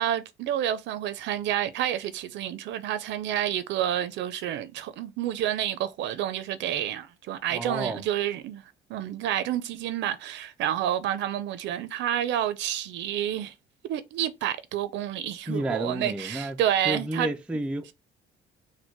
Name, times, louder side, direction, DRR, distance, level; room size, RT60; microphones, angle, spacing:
voice 1, 0.0-8.6 8.9-13.5 13.8-17.3, right 11 dB, 75° right, 0.6 m, -29 dB
voice 2, 7.5-8.0 15.5-16.6 16.9-17.9, right 1 dB, 5° right, 0.3 m, -31 dB
4.4 x 2.2 x 4.4 m
cardioid pair, 160°, 19 cm